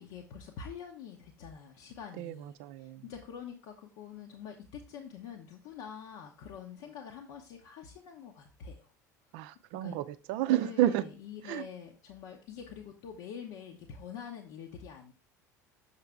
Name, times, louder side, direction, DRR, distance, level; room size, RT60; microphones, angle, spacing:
voice 1, 0.0-8.9 9.8-9.9 10.5-15.1, left 7 dB, 60° left, 1 dB, 0.8 m, -46 dB
voice 2, 2.2-3.0 9.3-11.0 11.5-11.6, right 13 dB, 55° right, 13 dB, 0.5 m, -31 dB
6.7 x 5.7 x 3.5 m, 0.34 s
figure-of-eight pair, 70°, 10 cm